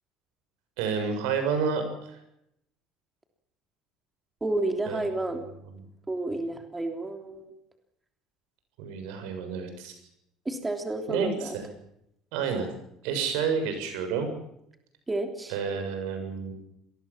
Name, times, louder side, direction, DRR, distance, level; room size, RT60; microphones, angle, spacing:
voice 1, 0.8-2.2 4.9-5.0 8.8-9.9 11.1-11.7 12.3-12.7 13.0-14.3 15.5-16.5, right 6 dB, 85° right, 7 dB, 7.1 m, -29 dB
voice 2, 4.4-5.5 6.1-7.5 10.4-11.6 15.1-15.5, right 2 dB, 15° right, 5 dB, 3.2 m, -30 dB
25.5 x 20.0 x 7.4 m, 0.78 s
cardioid pair, 115°, 0 cm